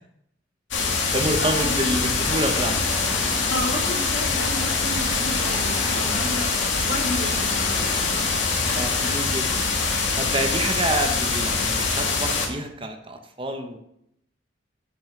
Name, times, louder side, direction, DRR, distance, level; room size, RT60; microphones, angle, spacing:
sound 1, 0.7-12.5, left 4 dB, 90° left, 2.2 m, -24 dB
voice 1, 0.8-2.8 8.7-9.6 10.1-13.8, right 1 dB, 30° right, 5 dB, 1.1 m, -28 dB
voice 2, 1.4-1.9 3.5-7.9 8.6-9.2 10.8-11.1, left 1 dB, 65° left, 0 dB, 2.7 m, -32 dB
sound 2, 2.2-9.0, left 1 dB, 30° left, 1.9 m, -36 dB
11.0 x 5.5 x 6.2 m, 0.76 s
head